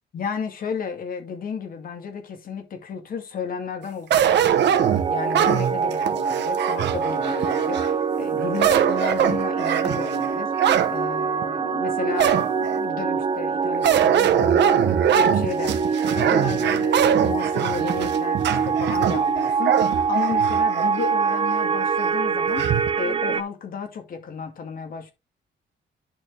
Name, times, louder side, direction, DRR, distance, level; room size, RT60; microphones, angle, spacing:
voice 1, 0.1-4.8 5.1-22.7 23.0-25.1, left 6 dB, 50° left, 2.1 m, -33 dB
sound 1, 4.1-7.9 8.4-10.9 11.4-11.5 12.2-12.8 13.8-20.9 21.3-21.4 22.6-22.9, right 9 dB, 70° right, 1.0 m, -22 dB
sound 2, 4.8-23.4, right 6 dB, 30° right, 0.5 m, -24 dB
10.5 x 4.4 x 3.5 m
cardioid pair, 150°, 19 cm